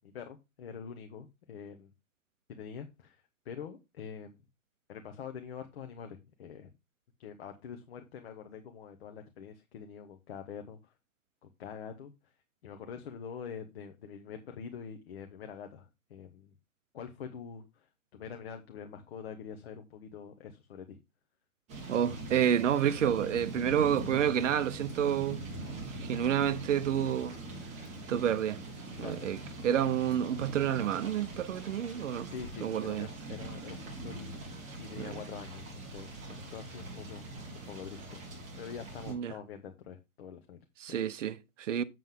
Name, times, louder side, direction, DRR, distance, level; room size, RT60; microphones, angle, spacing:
voice 1, 0.0-1.9 2.5-4.4 4.9-6.7 7.2-10.9 11.4-12.3 12.6-16.5 16.9-21.0 29.0-29.3 32.3-34.4 34.8-37.3 37.7-40.6, left 7 dB, 45° left, 1.2 m, -45 dB
sound 1, 21.7-39.1, right 2 dB, 15° right, 2.7 m, -43 dB
voice 2, 21.9-25.5 26.0-27.3 28.1-28.6 29.0-29.4 29.6-32.3 32.6-33.1 35.0-35.1 39.1-39.3 40.8-41.8, right 9 dB, 55° right, 0.9 m, -29 dB
7.6 x 7.6 x 3.7 m
hypercardioid pair, 160°, 43 cm